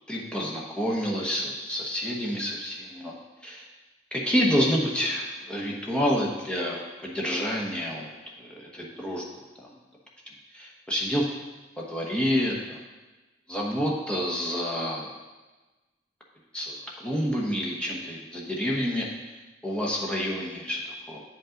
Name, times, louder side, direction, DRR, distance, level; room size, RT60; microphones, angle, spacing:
voice 1, 0.1-3.1 3.4-3.7 4.1-8.1 8.4-9.3 10.5-11.2 11.8-12.8 13.5-15.1 16.5-19.1 19.6-21.2, equal, 5° left, -4 dB, 1.0 m, -28 dB
8.8 x 5.4 x 3.8 m, 1.2 s
head